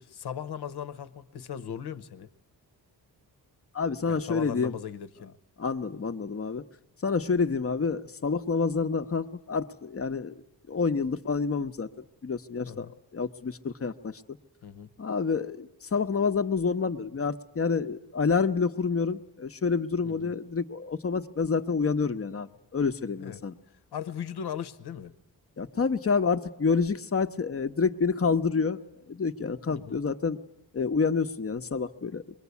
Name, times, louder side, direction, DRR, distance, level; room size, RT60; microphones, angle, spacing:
voice 1, 0.0-2.3 4.1-5.4 12.7-12.9 14.6-14.9 20.0-20.3 23.2-23.4 23.9-25.1 29.7-30.0, left 8 dB, 75° left, 1.0 m, -38 dB
voice 2, 3.7-4.8 5.6-6.6 7.0-10.4 10.7-11.9 12.2-12.9 13.1-14.2 15.0-23.5 25.6-30.4 30.7-32.2, left 5 dB, 35° left, 0.9 m, -28 dB
25.0 x 22.0 x 8.3 m
cardioid pair, 100°, 39 cm